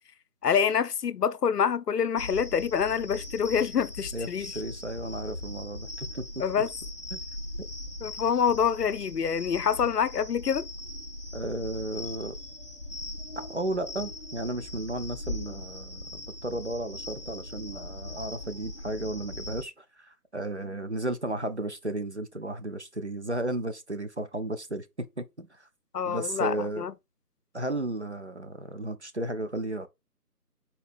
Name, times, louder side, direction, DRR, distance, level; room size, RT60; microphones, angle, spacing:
voice 1, 0.4-4.5 6.4-6.7 8.0-10.7 25.9-26.9, left 7 dB, 80° left, 0.6 m, -26 dB
sound 1, 2.2-19.7, left 1 dB, 40° left, 0.5 m, -40 dB
voice 2, 4.1-6.4 7.1-7.2 11.3-12.4 13.4-25.7 26.1-26.9 27.5-29.9, right 1 dB, 50° right, 0.5 m, -34 dB
4.1 x 2.6 x 4.0 m
figure-of-eight pair, 160°, 47 cm